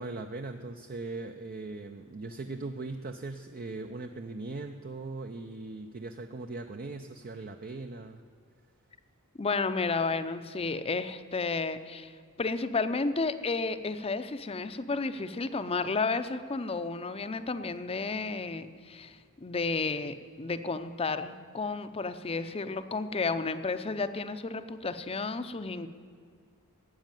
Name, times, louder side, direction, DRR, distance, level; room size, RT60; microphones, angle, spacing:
voice 1, 0.0-8.2, right 3 dB, 45° right, 6 dB, 0.6 m, -39 dB
voice 2, 9.4-12.1 12.4-25.9, left 4 dB, 25° left, 11 dB, 0.6 m, -32 dB
13.0 x 8.3 x 9.1 m, 2.1 s
head